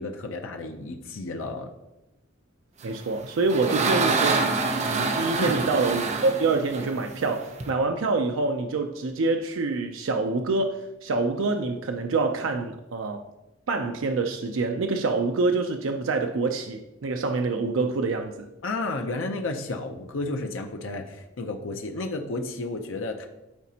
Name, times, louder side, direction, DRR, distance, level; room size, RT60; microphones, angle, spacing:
voice 1, 0.0-1.7 3.7-3.9 5.4-5.6 18.6-23.3, left 2 dB, 80° left, 0.7 m, -32 dB
voice 2, 2.8-4.4 4.8-13.2 13.7-18.5, right 3 dB, 85° right, 0.5 m, -26 dB
sound 1, 3.0-7.7, right 3 dB, 35° right, 0.6 m, -26 dB
12.0 x 4.1 x 2.8 m
head